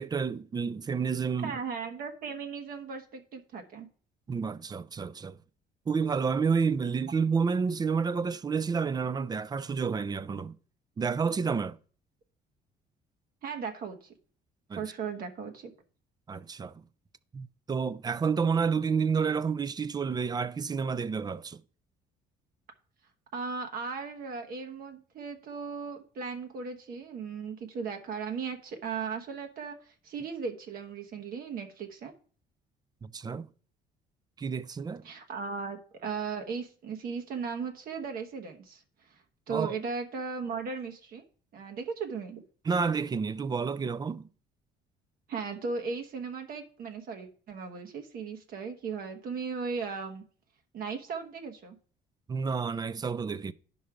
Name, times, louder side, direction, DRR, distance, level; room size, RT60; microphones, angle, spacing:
voice 1, 0.0-1.5 4.3-5.4 5.9-10.5 11.0-11.8 14.7-14.8 16.3-16.7 17.3-21.6 33.0-33.5 34.4-35.0 39.5-39.7 42.7-44.3 52.3-53.5, right 5 dB, 25° right, 0.4 m, -30 dB
voice 2, 1.4-3.9 13.4-14.1 14.7-15.7 23.3-32.1 35.0-41.2 41.5-42.4 45.3-50.2 50.7-51.8, right 5 dB, 60° right, 1.2 m, -37 dB
10.0 x 5.4 x 4.8 m
cardioid pair, 110°, 17 cm